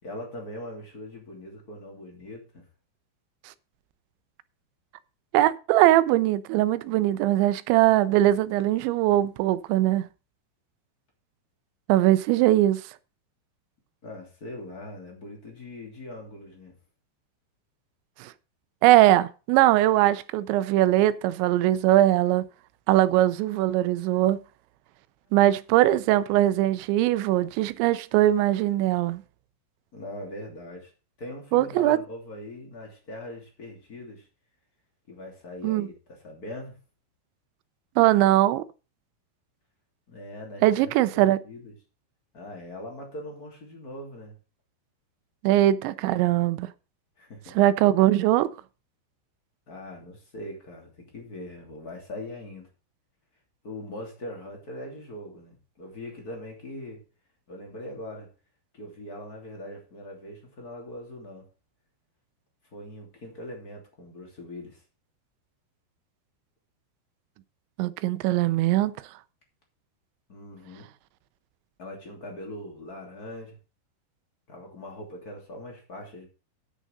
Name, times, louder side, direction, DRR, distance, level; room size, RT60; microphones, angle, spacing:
voice 1, 0.0-2.6 14.0-16.7 29.9-30.9 31.2-34.3 35.1-36.8 40.1-41.7 42.3-44.4 47.2-47.6 49.7-52.7 53.6-57.0 57.5-58.3 58.7-61.4 62.7-64.8 70.3-70.9 71.8-73.6 74.5-76.3, left 1 dB, 25° left, 2.7 m, -41 dB
voice 2, 5.3-10.1 11.9-12.8 18.2-18.3 18.8-22.4 22.9-24.4 25.3-29.2 31.5-32.0 35.6-35.9 38.0-38.6 40.6-41.4 45.4-46.7 47.6-48.5 67.8-69.0, right 14 dB, 90° right, 3.0 m, -21 dB
10.0 x 6.4 x 6.5 m
omnidirectional pair, 5.1 m